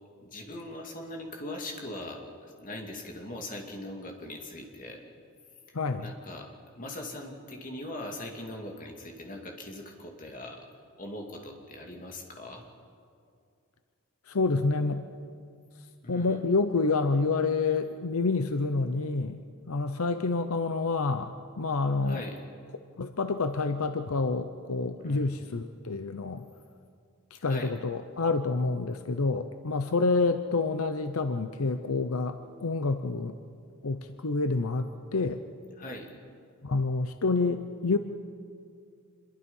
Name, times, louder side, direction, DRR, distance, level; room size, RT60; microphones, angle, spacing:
voice 1, 0.2-5.0 5.7-6.5 6.7-10.6 11.0-12.7 16.0-16.4 22.0-22.4 25.0-25.3 27.4-27.7 35.8-36.1, left 1 dB, 40° left, 2 dB, 2.6 m, -41 dB
voice 2, 5.7-6.1 14.3-15.0 16.1-22.2 23.0-26.5 27.3-33.4 33.8-35.4 36.6-38.0, left 3 dB, 75° left, 9 dB, 0.8 m, -28 dB
26.5 x 22.5 x 5.6 m, 2.3 s
head